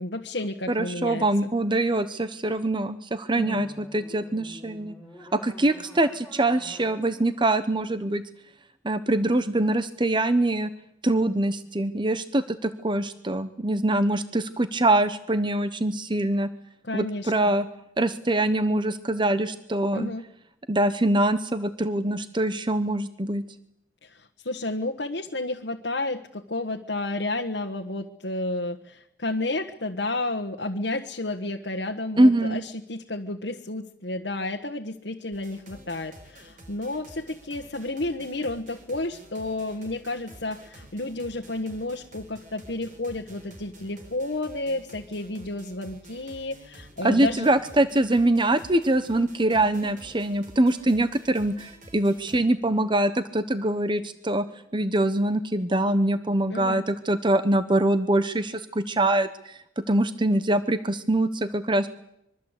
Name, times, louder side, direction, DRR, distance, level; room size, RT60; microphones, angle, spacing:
voice 1, 0.0-1.5 3.3-3.6 16.8-17.3 19.9-20.2 24.0-47.5 56.5-56.8, left 2 dB, 70° left, 3 dB, 1.5 m, -31 dB
voice 2, 0.7-4.9 5.3-8.2 8.8-10.7 11.0-16.5 16.9-17.7 18.0-20.1 20.7-23.4 32.2-32.6 47.0-54.4 54.7-61.9, right 1 dB, 25° right, 11 dB, 1.0 m, -24 dB
sound 1, 3.4-8.5, equal, ahead, 5.5 m, -48 dB
sound 2, 35.3-52.4, right 1 dB, 45° right, 4.6 m, -49 dB
25.0 x 23.0 x 8.3 m, 0.80 s
head